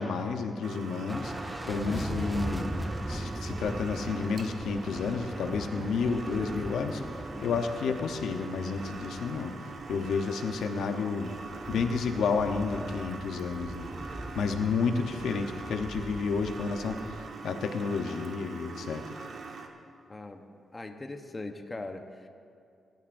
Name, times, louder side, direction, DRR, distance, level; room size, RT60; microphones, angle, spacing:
voice 1, 0.0-1.3 1.7-2.7 3.1-7.0 7.4-9.5 9.9-11.3 11.7-13.9 14.4-19.0, left 5 dB, 85° left, 6 dB, 0.8 m, -31 dB
sound 1, 0.6-19.7, right 4 dB, 60° right, 1.2 m, -43 dB
sound 2, 1.1-17.3, equal, 5° right, 0.5 m, -40 dB
voice 2, 7.3-7.7 20.1-20.4 20.7-22.3, left 2 dB, 25° left, 5 dB, 0.9 m, -40 dB
20.5 x 12.5 x 2.6 m, 2.3 s
cardioid pair, 95°, 0 cm